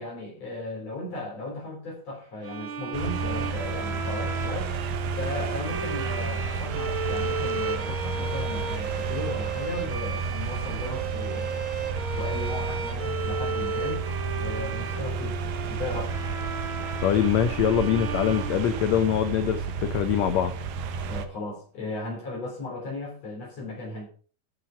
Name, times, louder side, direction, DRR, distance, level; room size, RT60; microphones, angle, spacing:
voice 1, 0.0-4.7 5.2-11.7 12.1-14.0 14.4-16.1 21.1-24.0, left 2 dB, 45° left, -2 dB, 4.6 m, -36 dB
sound 1, 2.4-19.3, right 4 dB, 50° right, 1.7 m, -34 dB
sound 2, 2.9-21.3, right 5 dB, 75° right, 2.8 m, -32 dB
voice 2, 17.0-20.5, left 9 dB, 75° left, 8 dB, 1.6 m, -24 dB
14.0 x 6.8 x 5.7 m, 0.40 s
omnidirectional pair, 4.2 m